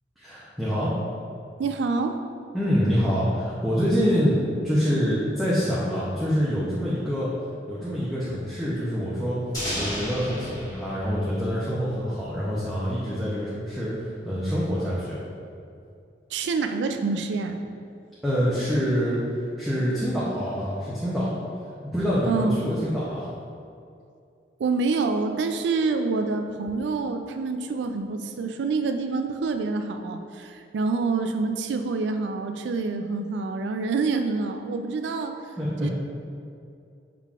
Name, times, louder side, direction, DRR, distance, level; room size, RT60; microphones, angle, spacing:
voice 1, 0.2-0.9 2.5-7.3 7.7-9.4 9.7-15.2 18.2-19.2 19.6-21.3 21.9-23.3 35.6-35.9, equal, ahead, -10 dB, 0.6 m, -26 dB
voice 2, 1.6-2.2 16.3-17.6 22.3-22.6 24.6-35.4 35.8-35.9, right 4 dB, 75° right, 7 dB, 0.3 m, -27 dB
sound 1, 9.5-12.3, equal, 20° left, 1.4 m, -34 dB
5.7 x 3.7 x 2.4 m, 2.4 s
head